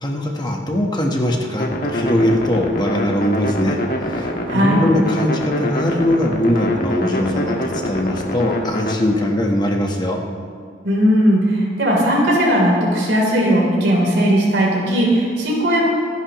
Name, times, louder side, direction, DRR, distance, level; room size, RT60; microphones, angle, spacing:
voice 1, 0.0-10.2, left 1 dB, 25° left, 1 dB, 1.3 m, -21 dB
sound 1, 1.6-9.0, equal, 50° left, 1.7 m, -24 dB
voice 2, 4.5-4.8 10.8-15.9, equal, 90° right, -3 dB, 3.7 m, -17 dB
25.5 x 10.5 x 3.1 m, 2.2 s
head